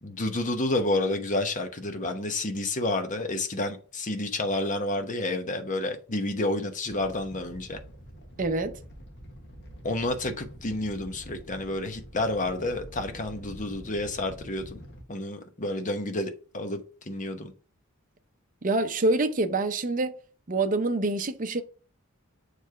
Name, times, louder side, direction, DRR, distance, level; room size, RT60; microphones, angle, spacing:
voice 1, 0.0-7.8 9.8-14.8 15.1-17.5, left 2 dB, 35° left, 1.0 m, -30 dB
Animal, 6.8-15.0, equal, 50° left, 1.4 m, -46 dB
voice 2, 8.4-8.8 18.6-20.1 20.5-21.6, right 2 dB, 35° right, 0.6 m, -26 dB
7.1 x 3.3 x 4.5 m
head